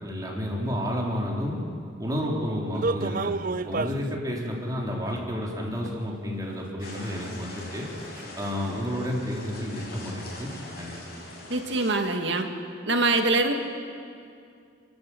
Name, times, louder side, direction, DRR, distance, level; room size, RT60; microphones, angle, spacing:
voice 1, 0.0-1.6 2.0-3.3 3.7-7.9 8.4-10.9, equal, 20° right, -2 dB, 3.6 m, -31 dB
sound 1, 2.7-4.1 5.1-5.2 5.8-5.9 6.4-6.5 7.1-7.2 7.8-7.9 8.2-8.3, right 3 dB, 45° right, 0.5 m, -29 dB
sound 2, 6.8-11.9, left 1 dB, 55° left, 6.3 m, -42 dB
voice 2, 11.5-12.5 12.9-13.5, right 2 dB, 70° right, 4 dB, 2.0 m, -24 dB
29.5 x 12.0 x 8.6 m, 2.4 s
head